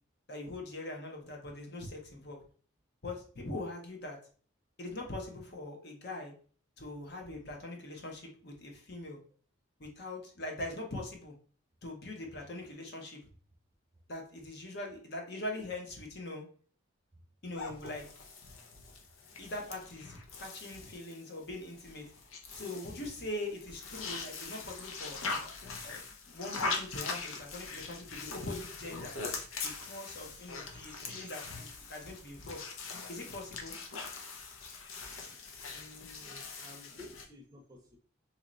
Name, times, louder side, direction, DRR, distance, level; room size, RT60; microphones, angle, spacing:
voice 1, 0.3-2.4 3.0-4.2 4.8-6.3 6.8-9.2 9.8-11.3 11.8-13.2 14.1-16.4 17.4-18.0 19.4-22.1 22.5-25.2 25.8-29.1 29.6-32.6 33.1-33.7, left 2 dB, 50° left, 1 dB, 0.9 m, -42 dB
sound 1, 17.6-37.3, left 4 dB, 80° left, 0.8 m, -42 dB
voice 2, 35.7-38.0, left 2 dB, 15° right, 1 dB, 0.6 m, -53 dB
3.0 x 2.9 x 3.8 m, 0.43 s
head